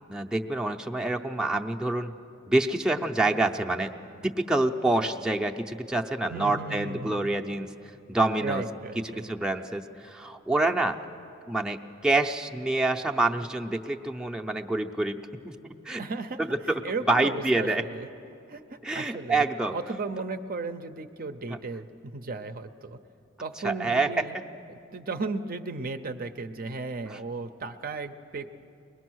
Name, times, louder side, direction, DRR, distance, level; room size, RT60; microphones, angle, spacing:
voice 1, 0.1-2.1 2.5-3.9 4.2-7.7 8.1-8.6 9.0-11.0 11.5-16.0 16.4-16.8 17.1-17.8 18.8-19.8 21.5-21.6 23.6-24.3 27.1-27.2, right 2 dB, 5° right, 2 dB, 0.6 m, -27 dB
voice 2, 6.3-7.4 8.4-9.3 15.9-16.5 16.8-18.1 18.5-23.0 23.4-24.4 24.9-28.5, right 3 dB, 45° right, 8 dB, 0.6 m, -35 dB
22.5 x 20.0 x 6.2 m, 2.7 s
head